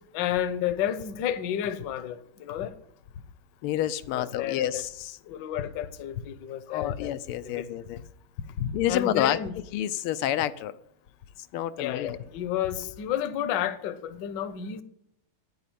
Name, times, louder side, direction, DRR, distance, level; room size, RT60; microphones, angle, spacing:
voice 1, 0.1-2.7 4.1-4.8 5.3-7.1 7.6-7.7 8.6-9.6 11.8-14.8, left 10 dB, 65° left, 1.3 m, -31 dB
voice 2, 3.6-5.2 6.7-8.0 8.7-9.4 9.7-10.7 11.5-12.2, left 12 dB, 90° left, 1.5 m, -29 dB
9.4 x 9.0 x 8.4 m
omnidirectional pair, 2.3 m